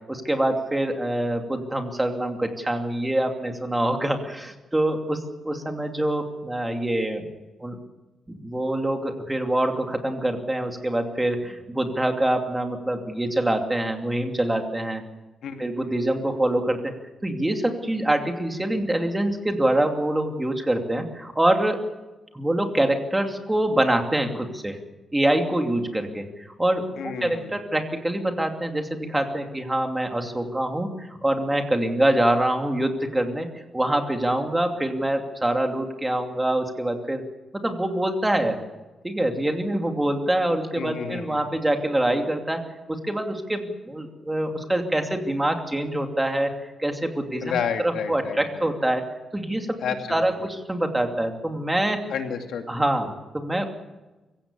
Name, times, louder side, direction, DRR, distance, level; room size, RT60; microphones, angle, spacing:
voice 1, 0.1-7.3 7.6-7.8 8.3-15.0 15.6-16.9 17.2-21.9 22.3-24.8 25.1-26.2 26.6-33.5 33.7-37.2 37.5-38.6 39.0-42.6 42.9-47.6 47.8-49.0 49.3-49.8 50.1-52.0 52.7-53.7, right 1 dB, 10° right, 4 dB, 2.6 m, -25 dB
voice 2, 27.0-27.6 40.8-41.4 47.4-48.6 49.8-50.2 52.1-52.7, left 7 dB, 85° left, 5 dB, 2.5 m, -30 dB
24.5 x 16.0 x 8.5 m, 1.1 s
wide cardioid pair, 140°, 0 cm